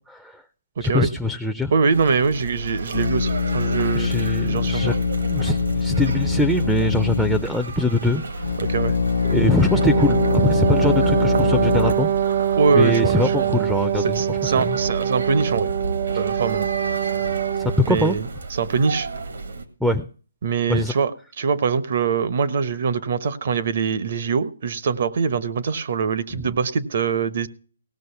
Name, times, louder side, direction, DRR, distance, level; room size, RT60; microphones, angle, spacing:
voice 1, 0.1-0.4 0.8-1.7 3.9-5.0 5.2-8.4 9.2-12.4 12.8-14.8 17.6-18.2 19.8-20.1 20.7-20.9, left 1 dB, ahead, 9 dB, 0.6 m, -23 dB
voice 2, 0.8-1.1 1.7-4.1 4.4-5.0 8.6-9.0 12.6-13.3 14.0-15.7 16.1-16.7 17.8-19.1 20.4-21.1 21.4-27.5, right 5 dB, 55° right, 12 dB, 1.0 m, -23 dB
sound 1, 1.9-19.7, right 2 dB, 80° right, 1.9 m, -32 dB
sound 2, 2.9-7.8 8.4-12.0, left 5 dB, 70° left, 0.5 m, -23 dB
Wind instrument woodwind instrument, 9.7-17.9, right 10 dB, 40° right, 0.6 m, -24 dB
17.5 x 6.2 x 5.8 m, 0.39 s
hypercardioid pair, 150°, 0 cm